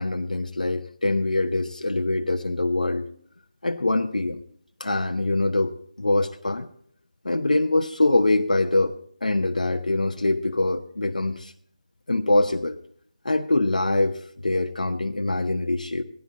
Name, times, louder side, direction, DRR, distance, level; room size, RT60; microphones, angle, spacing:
voice 1, 0.0-3.1 3.6-4.4 4.8-6.7 7.2-11.5 12.1-12.8 13.2-16.0, left 2 dB, 85° left, 6 dB, 0.8 m, -24 dB
15.0 x 10.5 x 4.0 m, 0.62 s
figure-of-eight pair, 160°, 4 cm